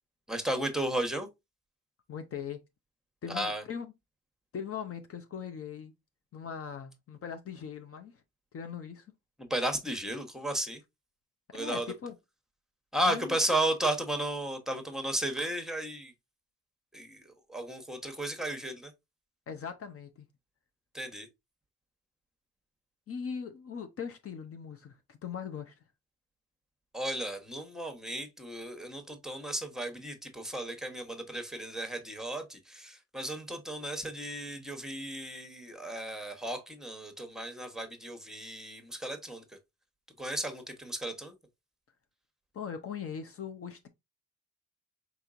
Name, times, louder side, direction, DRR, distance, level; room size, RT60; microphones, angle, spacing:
voice 1, 0.3-1.3 3.3-3.6 9.4-10.8 11.5-11.9 12.9-16.1 16.9-18.9 20.9-21.3 26.9-39.4 40.2-41.3, right 1 dB, ahead, 1.1 m, -34 dB
voice 2, 2.1-2.6 3.2-3.9 4.5-5.9 6.3-8.1 8.5-9.1 11.5-12.1 13.1-13.4 19.5-20.3 23.1-25.7 42.5-43.9, left 7 dB, 50° left, 0.7 m, -40 dB
4.3 x 4.1 x 2.5 m
cardioid pair, 90°, 30 cm